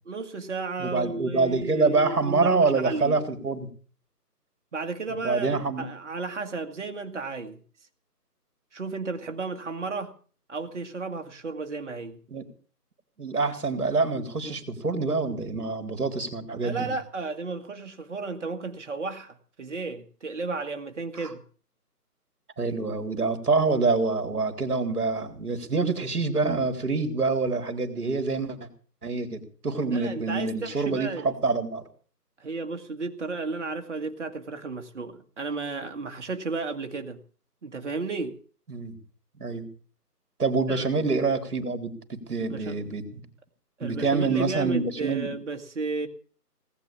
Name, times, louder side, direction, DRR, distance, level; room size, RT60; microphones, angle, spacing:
voice 1, 0.1-3.2 4.7-7.6 8.7-10.1 10.5-12.2 14.5-14.6 16.6-21.4 29.9-31.3 32.4-37.2 37.6-38.4 40.7-40.9 42.4-42.8 43.8-46.1, right 3 dB, 45° right, 2.0 m, -33 dB
voice 2, 0.8-3.7 5.2-5.9 12.3-12.4 13.2-16.9 22.6-28.6 29.0-31.8 38.7-39.0 39.4-39.7 40.4-43.3 43.8-45.3, right 3 dB, 65° right, 3.7 m, -26 dB
19.0 x 8.7 x 8.7 m
figure-of-eight pair, 165°, 48 cm